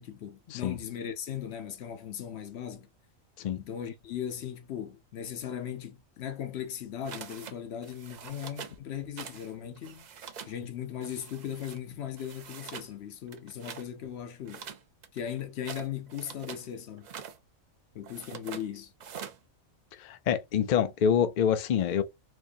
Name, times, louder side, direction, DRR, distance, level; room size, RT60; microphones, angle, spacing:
voice 1, 0.0-2.9 3.6-10.1 10.5-14.7 15.1-17.1 17.9-18.9, left 9 dB, 60° left, 0.8 m, -38 dB
sound 1, 7.0-7.6 7.8-8.8 9.2-9.5 9.8-10.6 11.0-11.8 12.2-12.9 13.3-13.9 14.4-16.7 17.0-17.4 18.0-18.7 19.0-19.4, right 7 dB, 90° right, 0.3 m, -44 dB
voice 2, 20.0-22.0, left 8 dB, 80° left, 0.4 m, -26 dB
4.3 x 2.7 x 2.5 m
omnidirectional pair, 1.4 m